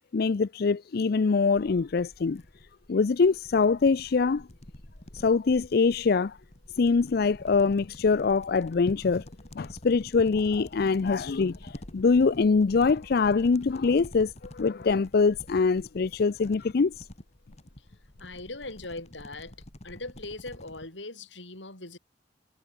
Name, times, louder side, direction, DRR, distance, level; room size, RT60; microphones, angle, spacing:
voice 1, 0.1-2.4 2.9-4.5 5.1-6.4 6.8-9.2 9.6-17.1, left 4 dB, 55° left, 0.5 m, -24 dB
sound 1, 1.6-20.9, left 1 dB, 35° left, 2.3 m, -48 dB
voice 2, 18.2-19.6 19.8-22.0, left 2 dB, 90° left, 7.7 m, -40 dB
head